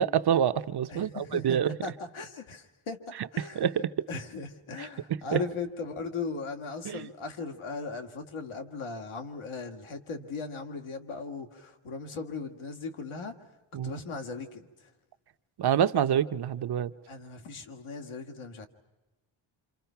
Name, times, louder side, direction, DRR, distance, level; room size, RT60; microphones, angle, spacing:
voice 1, 0.0-1.7 3.5-4.1 4.8-4.9 5.3-5.4 6.8-7.1 13.7-13.9 15.6-16.9, right 9 dB, 50° right, 0.8 m, -26 dB
voice 2, 0.9-13.3 13.8-14.7 17.1-18.7, left 4 dB, 80° left, 2.3 m, -38 dB
28.0 x 27.5 x 5.8 m
wide cardioid pair, 160°, 49 cm